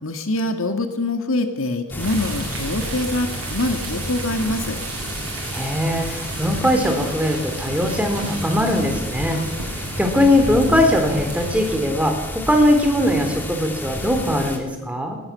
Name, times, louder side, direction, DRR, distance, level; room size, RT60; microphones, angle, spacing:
voice 1, 0.0-4.8, left 2 dB, 70° left, 7 dB, 2.2 m, -24 dB
sound 1, 1.9-14.6, left 1 dB, 10° left, 3.0 m, -31 dB
sound 2, 2.0-11.8, right 3 dB, 70° right, 6.4 m, -33 dB
voice 2, 5.5-9.4 10.0-15.2, left 1 dB, 5° right, 4 dB, 3.7 m, -20 dB
21.5 x 20.0 x 7.1 m, 1.1 s
head